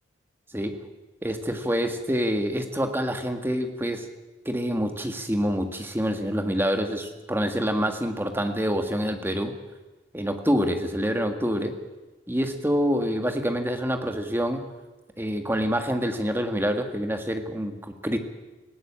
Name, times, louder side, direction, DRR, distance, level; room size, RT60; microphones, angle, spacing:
voice 1, 0.5-0.9 1.2-4.1 4.5-9.5 10.1-11.8 12.3-14.6 15.2-18.2, equal, 10° right, 6 dB, 1.8 m, -26 dB
18.5 x 17.0 x 8.7 m, 1.2 s
head